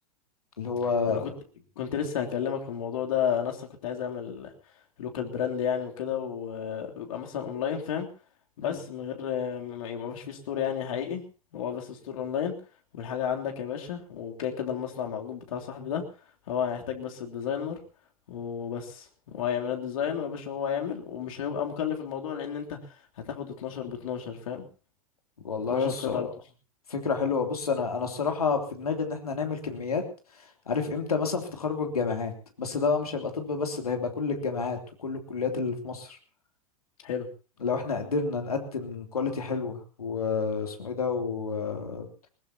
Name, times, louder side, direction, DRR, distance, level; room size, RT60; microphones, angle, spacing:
voice 1, 0.6-1.3 8.6-8.8 25.4-26.3 26.9-30.0 30.7-32.3 32.6-36.2 37.6-42.1, left 5 dB, 80° left, 4 dB, 3.2 m, -29 dB
voice 2, 1.7-4.5 5.0-8.1 8.6-11.2 11.5-12.5 12.9-16.0 16.5-17.8 18.3-22.8 23.2-24.6 25.7-26.3 37.0-37.3, left 8 dB, 65° left, 2 dB, 3.3 m, -32 dB
20.5 x 20.5 x 2.9 m, 0.36 s
figure-of-eight pair, 95°, 19 cm